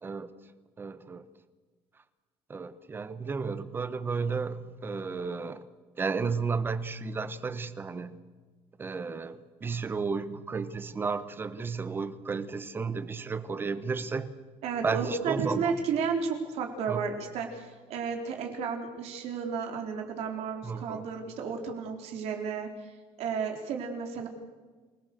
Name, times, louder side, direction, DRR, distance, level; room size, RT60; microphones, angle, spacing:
voice 1, 0.0-0.3 0.8-1.3 2.5-5.6 6.0-8.2 8.8-14.3 14.8-15.7 16.9-17.1 20.6-21.0, right 4 dB, 20° right, 13 dB, 1.2 m, -33 dB
voice 2, 14.6-22.7 23.2-24.3, right 6 dB, 70° right, 3 dB, 3.8 m, -32 dB
28.5 x 19.0 x 6.8 m, 1.4 s
cardioid pair, 175°, 11 cm